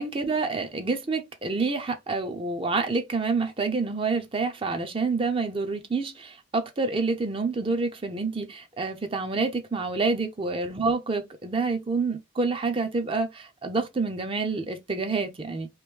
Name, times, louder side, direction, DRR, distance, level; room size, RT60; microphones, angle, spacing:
voice 1, 0.0-15.7, right 4 dB, 30° right, 0.5 m, -28 dB
3.0 x 2.6 x 3.4 m
head